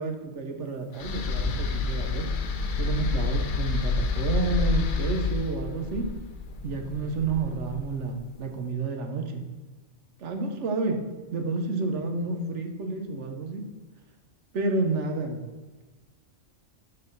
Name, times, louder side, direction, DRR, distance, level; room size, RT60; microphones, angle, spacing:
voice 1, 0.0-2.3 2.7-6.1 6.6-9.4 10.2-11.0 11.3-13.6 14.5-15.4, right 3 dB, 70° right, 4 dB, 1.1 m, -30 dB
sound 1, 1.0-8.1, left 4 dB, 55° left, 0.6 m, -29 dB
5.4 x 3.9 x 5.5 m, 1.3 s
omnidirectional pair, 1.3 m